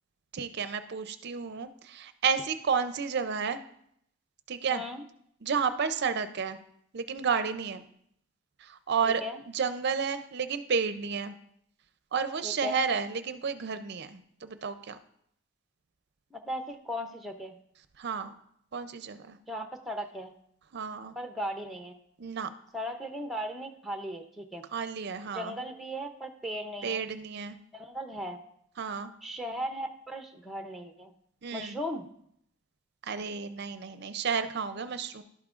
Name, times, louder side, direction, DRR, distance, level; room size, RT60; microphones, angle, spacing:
voice 1, 0.3-3.6 4.5-4.8 5.4-6.6 6.9-7.8 8.6-9.2 9.5-11.4 12.1-15.0 18.0-18.3 18.7-19.4 20.7-21.1 22.2-22.5 24.7-25.6 26.8-27.6 28.8-29.1 31.4-31.8 33.0-35.2, right 6 dB, 50° right, 10 dB, 0.5 m, -31 dB
voice 2, 4.7-5.0 9.0-9.4 12.4-12.8 16.3-17.5 19.5-20.3 21.2-21.9 22.7-24.6 25.3-27.1 27.7-28.4 29.2-31.1 31.5-32.0, equal, ahead, 4 dB, 0.5 m, -37 dB
11.5 x 8.6 x 2.4 m, 0.70 s
head